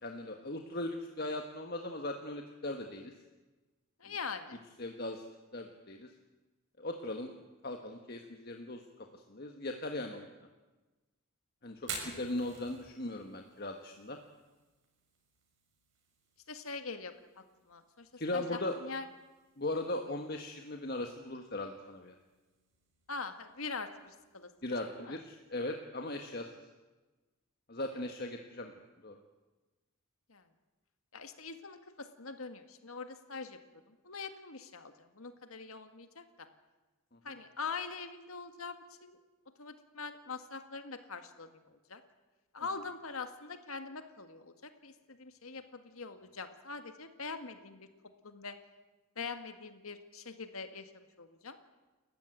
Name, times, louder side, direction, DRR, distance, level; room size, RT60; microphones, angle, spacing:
voice 1, 0.0-3.1 4.8-5.2 5.5-6.1 6.8-7.3 7.6-8.8 9.1-10.3 11.6-14.2 18.2-18.8 19.6-22.1 24.6-26.5 27.7-28.7 29.0-29.2 37.3-37.4, left 1 dB, 45° left, 4 dB, 1.5 m, -38 dB
voice 2, 4.0-4.6 16.5-17.1 17.7-19.1 23.1-24.5 25.0-25.2 30.3-30.4 31.1-33.6 33.9-36.5 37.2-39.2 39.6-42.0 42.5-47.9 48.2-48.6 49.2-50.9 51.2-51.6, left 4 dB, 80° left, 8 dB, 1.8 m, -43 dB
Fire, 11.8-25.6, right 4 dB, 55° right, 6.3 m, -52 dB
29.5 x 14.5 x 9.2 m, 1.2 s
head